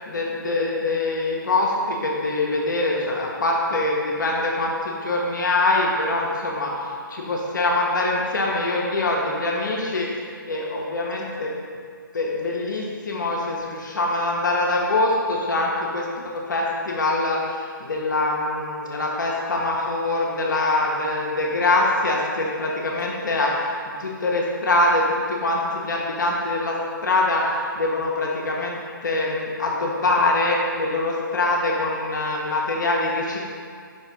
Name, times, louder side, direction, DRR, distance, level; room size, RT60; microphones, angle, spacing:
voice 1, 0.1-11.5 12.1-16.1 16.3-33.5, left 2 dB, 60° left, -2 dB, 0.6 m, -24 dB
5.0 x 3.1 x 2.9 m, 2.2 s
figure-of-eight pair, 140°, 11 cm